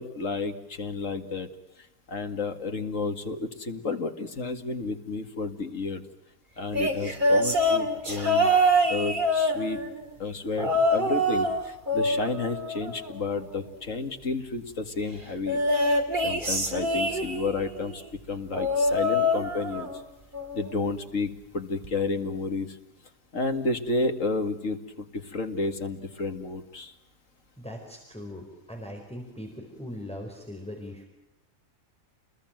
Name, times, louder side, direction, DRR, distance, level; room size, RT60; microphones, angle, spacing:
voice 1, 0.0-1.5 2.1-6.0 6.6-8.5 8.9-9.8 10.2-15.6 16.1-19.9 20.5-22.8 23.3-26.9, left 3 dB, 65° left, 6 dB, 2.4 m, -31 dB
sound 1, 6.7-10.0 10.6-11.6 11.9-13.4 15.5-17.6 18.5-20.0 20.3-20.7 21.8-21.9, equal, 35° right, 3.2 m, -25 dB
voice 2, 27.6-31.1, left 1 dB, 5° left, 2 dB, 4.4 m, -40 dB
29.5 x 21.5 x 9.2 m, 0.91 s
omnidirectional pair, 1.4 m